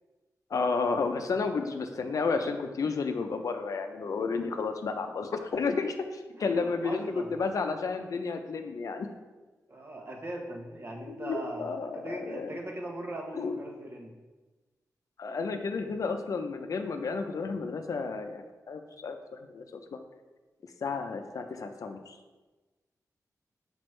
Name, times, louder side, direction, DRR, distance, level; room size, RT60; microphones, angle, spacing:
voice 1, 0.5-9.1 11.1-12.6 13.3-13.6 15.2-19.2 19.5-19.6 19.9-20.0 20.8-22.2, left 4 dB, 65° left, 6 dB, 0.5 m, -32 dB
voice 2, 6.3-7.3 9.7-14.1, right 1 dB, 40° right, 1 dB, 1.0 m, -40 dB
6.1 x 5.1 x 3.2 m, 1.2 s
wide cardioid pair, 95°, 6 cm